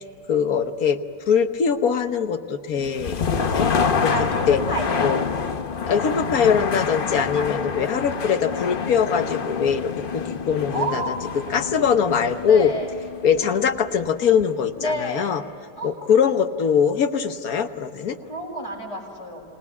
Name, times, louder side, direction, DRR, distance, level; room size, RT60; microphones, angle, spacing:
voice 1, 0.3-1.0 1.3-3.7 4.0-4.1 4.5-4.6 5.0-5.2 5.9-11.1 11.5-12.7 13.2-15.4 15.8-18.2, left 7 dB, 60° left, 9 dB, 1.5 m, -22 dB
sound 1, 2.8-14.6, left 5 dB, 40° left, 0.8 m, -27 dB
voice 2, 4.1-5.2 7.3-7.9 10.7-11.1 12.4-12.9 14.8-15.3 15.8-15.9 18.3-19.4, equal, 85° left, -1 dB, 6.7 m, -29 dB
27.5 x 19.5 x 8.4 m, 2.6 s
omnidirectional pair, 1.8 m